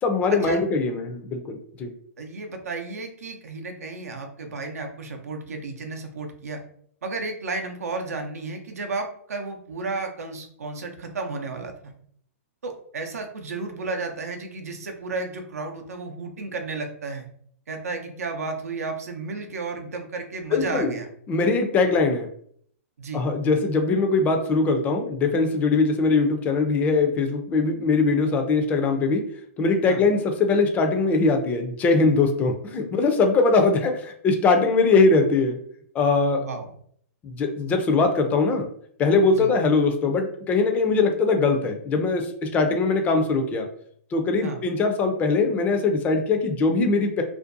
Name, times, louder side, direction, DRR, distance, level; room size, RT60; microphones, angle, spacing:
voice 1, 0.0-1.9 20.5-20.9 21.3-22.3 23.1-29.2 29.6-35.6 35.9-36.4 37.2-38.7 39.0-43.7 44.1-47.2, left 3 dB, 20° left, 5 dB, 0.4 m, -21 dB
voice 2, 2.2-6.6 7.0-11.9 12.6-17.2 17.7-21.1 21.7-21.8 23.0-23.2 29.9-30.0 36.4-36.7 39.3-39.5 44.4-44.6, right 3 dB, 85° right, 4 dB, 0.5 m, -33 dB
2.5 x 2.2 x 2.5 m, 0.62 s
hypercardioid pair, 135°, 8 cm